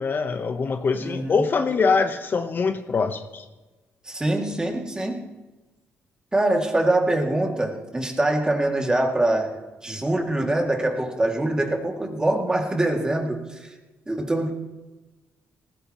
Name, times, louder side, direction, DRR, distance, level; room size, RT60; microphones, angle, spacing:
voice 1, 0.0-3.4, left 4 dB, 45° left, 7 dB, 0.9 m, -23 dB
voice 2, 1.0-1.4 4.0-5.3 6.3-9.5 9.8-13.7 14.1-14.5, right 1 dB, 15° right, 2 dB, 2.3 m, -24 dB
18.5 x 16.0 x 3.0 m, 1.2 s
cardioid pair, 90°, 5 cm